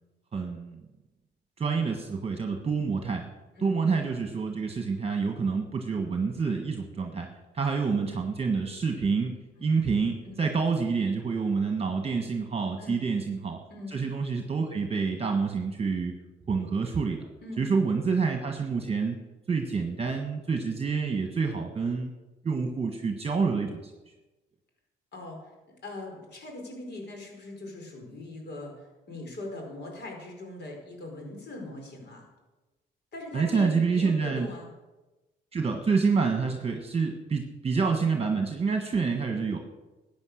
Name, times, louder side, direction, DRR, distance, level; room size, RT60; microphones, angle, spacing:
voice 1, 0.3-0.8 1.6-3.3 3.6-7.3 7.5-13.6 13.9-16.1 16.5-17.3 17.6-19.2 19.5-22.1 22.4-23.9 33.3-34.5 35.5-39.6, right 5 dB, 30° right, 4 dB, 1.5 m, -27 dB
voice 2, 25.1-25.5 25.8-32.3 33.1-34.7, left 2 dB, 60° left, 1 dB, 5.0 m, -41 dB
14.0 x 8.9 x 6.5 m, 1.1 s
cardioid pair, 90°, 20 cm